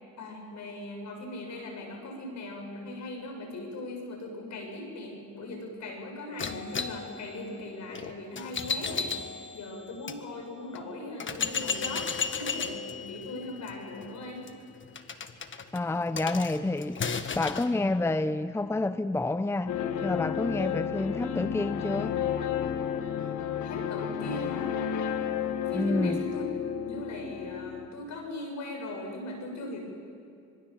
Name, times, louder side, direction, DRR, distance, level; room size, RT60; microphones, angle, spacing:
voice 1, 0.2-9.2 9.5-14.4 23.6-24.7 25.7-26.5 26.8-29.8, left 1 dB, 70° left, 3 dB, 6.9 m, -39 dB
sound 1, 6.4-10.2 10.8-10.9 11.2-17.7, left 5 dB, 40° left, 1.4 m, -35 dB
voice 2, 15.7-17.0 17.3-22.2 25.7-26.3, left 2 dB, 10° left, 13 dB, 0.7 m, -29 dB
sound 2, 19.7-27.9, left 9 dB, 85° left, 1.5 m, -32 dB
26.0 x 22.0 x 7.3 m, 2.5 s
cardioid pair, 90°, 30 cm